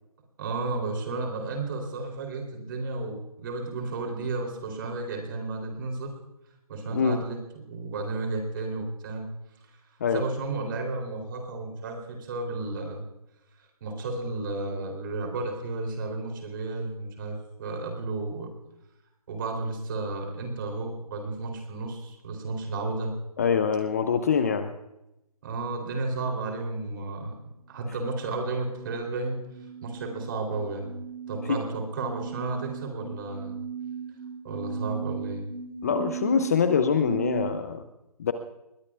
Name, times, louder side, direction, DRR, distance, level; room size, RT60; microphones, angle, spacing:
voice 1, 0.4-6.1 6.7-9.3 10.1-13.1 13.8-18.5 19.3-23.1 25.4-27.4 27.7-29.4 29.8-30.9 31.3-33.6 34.4-35.4, right 3 dB, 35° right, 2 dB, 3.4 m, -32 dB
voice 2, 23.4-24.7 31.5-31.6 35.8-37.8 38.2-38.3, left 6 dB, 25° left, 9 dB, 0.6 m, -24 dB
sound 1, 28.3-37.5, right 7 dB, 90° right, 3.4 m, -38 dB
28.0 x 21.0 x 2.4 m, 0.90 s
hypercardioid pair, 160°, 20 cm